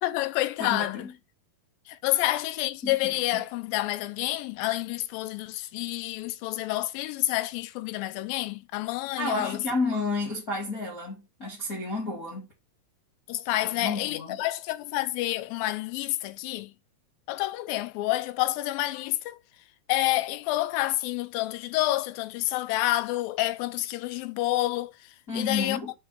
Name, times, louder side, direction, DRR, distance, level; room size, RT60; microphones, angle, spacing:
voice 1, 0.0-1.1 1.9-9.6 13.3-16.7 17.3-19.4 19.9-24.9 25.3-25.8, left 16 dB, 80° left, 2.2 m, -28 dB
voice 2, 0.6-1.1 2.8-3.4 9.2-12.5 13.7-14.4 25.3-25.9, left 3 dB, 30° left, 2.0 m, -31 dB
5.8 x 4.7 x 5.6 m
omnidirectional pair, 4.5 m